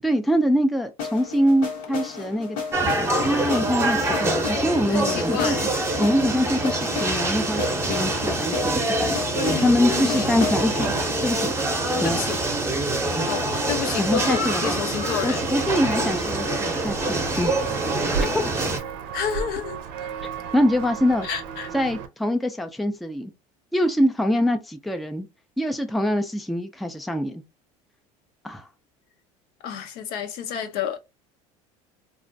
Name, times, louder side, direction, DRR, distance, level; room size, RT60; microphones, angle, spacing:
voice 1, 0.0-2.6 2.8-5.6 6.0-10.9 11.2-11.5 12.0-12.2 14.0-14.8 15.2-17.5 18.2-18.6 20.5-21.3 21.7-23.3 23.7-25.3 25.6-27.4 28.4-28.7, equal, ahead, 0.3 m, -24 dB
sound 1, 1.0-12.9, left 5 dB, 85° left, 1.1 m, -33 dB
sound 2, 2.7-18.8, right 2 dB, 15° right, 0.7 m, -25 dB
voice 2, 4.9-5.7 9.3-10.4 12.0-12.4 13.2-15.6 19.1-20.1 21.2-21.7 29.6-31.0, left 8 dB, 65° left, 0.6 m, -30 dB
Walk footsteps, 15.4-22.1, right 6 dB, 70° right, 0.5 m, -33 dB
2.4 x 2.1 x 2.6 m
supercardioid pair, 90°, 16 cm